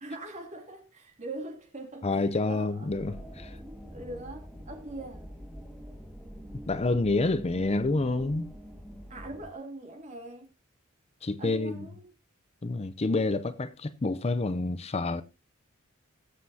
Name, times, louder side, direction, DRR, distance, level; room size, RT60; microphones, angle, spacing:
voice 1, 0.0-2.9 3.9-5.3 9.1-10.5 11.4-12.1, right 2 dB, 35° right, 2.8 m, -42 dB
voice 2, 2.0-3.6 6.7-8.5 11.2-11.9 12.6-15.2, left 2 dB, 30° left, 0.6 m, -28 dB
sound 1, 2.9-9.5, equal, ahead, 1.8 m, -45 dB
19.5 x 7.6 x 2.7 m
head